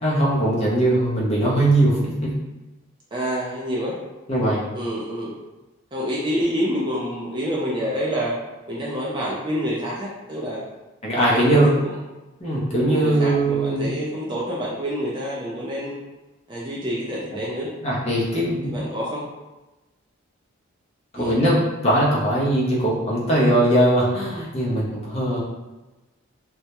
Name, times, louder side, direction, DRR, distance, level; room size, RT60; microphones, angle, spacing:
voice 1, 0.0-2.3 4.3-4.6 11.0-11.7 12.4-13.9 17.8-18.8 21.1-25.4, right 1 dB, 30° left, -6 dB, 0.5 m, -20 dB
voice 2, 3.1-4.0 4.7-5.4 5.9-8.4 8.7-10.6 11.1-11.9 12.9-16.0 16.5-17.7 18.6-19.2 21.2-21.4, equal, 20° right, -5 dB, 0.3 m, -27 dB
2.2 x 2.0 x 2.8 m, 1.1 s
head